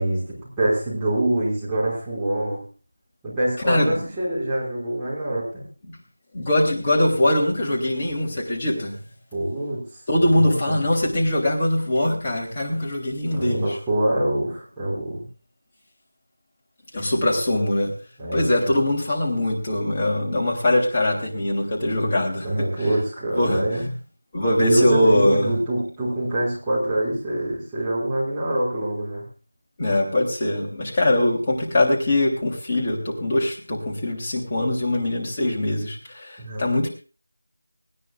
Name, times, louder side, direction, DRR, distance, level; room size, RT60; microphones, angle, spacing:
voice 1, 0.0-2.6 3.2-5.6 9.3-9.8 10.3-10.8 13.3-15.3 18.2-18.5 22.4-23.9 24.6-29.2 36.4-36.7, right 1 dB, 5° right, -9 dB, 5.4 m, -25 dB
voice 2, 3.6-4.0 6.3-8.9 10.1-13.8 16.9-17.9 18.3-22.5 22.8-22.9 23.4-23.9 24.3-25.5 29.8-36.9, left 1 dB, 20° left, -1 dB, 3.4 m, -22 dB
19.5 x 16.5 x 2.5 m, 0.35 s
figure-of-eight pair, 170°, 0 cm